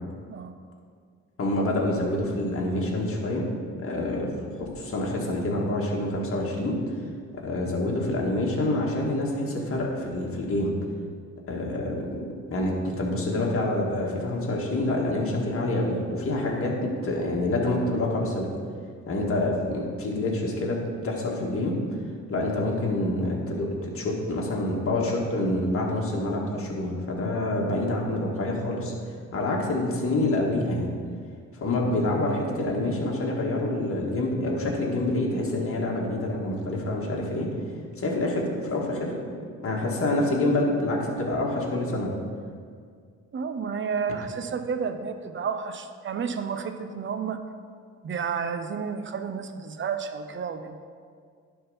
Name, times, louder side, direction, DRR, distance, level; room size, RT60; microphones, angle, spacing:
voice 1, 1.4-3.5 3.8-4.3 4.6-6.8 7.4-10.7 11.5-12.2 12.5-18.5 19.1-20.8 21.0-21.8 22.3-28.9 29.3-30.9 31.6-37.5 38.0-39.2 39.6-42.1, left 1 dB, 45° left, -2 dB, 1.8 m, -27 dB
voice 2, 43.3-47.4 48.0-50.8, right 6 dB, 40° right, 8 dB, 0.7 m, -31 dB
11.0 x 3.8 x 5.5 m, 2.1 s
cardioid pair, 90°, 30 cm